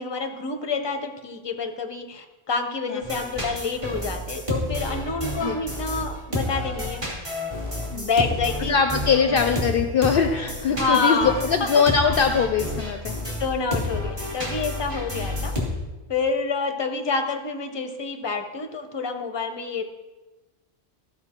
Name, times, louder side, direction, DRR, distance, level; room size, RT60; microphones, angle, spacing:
voice 1, 0.0-7.1 7.9-8.7 9.2-9.3 10.7-11.7 12.0-12.1 13.3-15.5 16.1-19.8, left 4 dB, 25° left, 5 dB, 0.7 m, -28 dB
sound 1, 3.0-15.7, left 1 dB, 30° right, 2.5 m, -30 dB
voice 2, 8.7-13.2, left 6 dB, 60° left, 7 dB, 0.7 m, -22 dB
14.5 x 5.4 x 4.4 m, 1.1 s
omnidirectional pair, 1.1 m